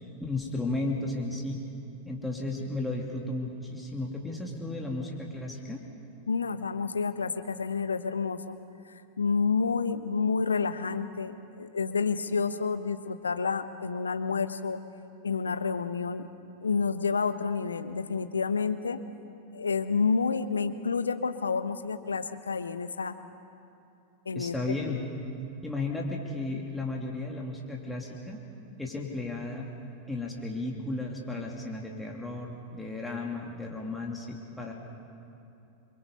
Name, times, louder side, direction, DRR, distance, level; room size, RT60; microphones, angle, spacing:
voice 1, 0.2-1.6 2.0-5.8 24.3-25.0 25.6-28.4 28.8-29.7 30.1-34.7, left 2 dB, 5° left, -2 dB, 2.9 m, -34 dB
voice 2, 6.3-8.6 9.2-14.8 15.2-16.3 16.6-19.0 19.5-23.1 24.2-24.5, left 5 dB, 75° left, 10 dB, 1.0 m, -29 dB
28.0 x 23.0 x 5.5 m, 2.7 s
figure-of-eight pair, 90°, 0 cm